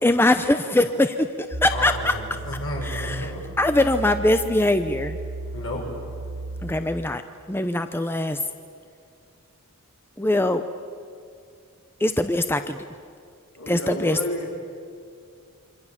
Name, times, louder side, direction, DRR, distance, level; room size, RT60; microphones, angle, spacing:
voice 1, 0.0-2.1 2.8-3.3 3.6-5.2 6.6-7.2 7.5-8.4 10.2-10.6 12.0-12.8 13.7-14.2, left 1 dB, 10° left, 9 dB, 0.7 m, -22 dB
sound 1, 1.5-6.7, right 2 dB, 75° right, 3.1 m, -35 dB
voice 2, 1.7-3.4 5.5-5.9, left 1 dB, 60° left, -1 dB, 6.5 m, -32 dB
voice 3, 13.5-14.5, equal, 85° left, 0 dB, 3.4 m, -30 dB
28.0 x 24.5 x 7.3 m, 2.3 s
head